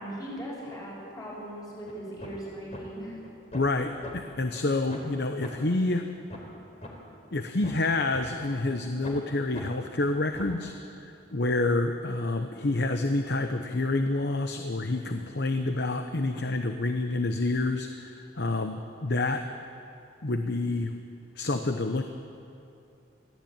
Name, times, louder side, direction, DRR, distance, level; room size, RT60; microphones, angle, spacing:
voice 1, 0.0-3.1, right 1 dB, 20° left, -4 dB, 6.6 m, -39 dB
sound 1, 1.9-2.0 2.2-2.4 2.7-2.8 3.2-3.8 4.0-4.1 4.5-4.6 4.9-5.1 5.4-5.5 5.9-6.0 6.3-6.5 6.8-6.9 7.3-8.2 8.6-8.7 9.0-9.2 9.5-9.7 10.1-10.6, left 1 dB, 40° left, 3.7 m, -42 dB
voice 2, 3.5-6.1 7.3-19.5 20.2-21.0 21.4-22.0, left 2 dB, 65° left, 6 dB, 1.0 m, -28 dB
22.0 x 15.5 x 8.9 m, 2.7 s
head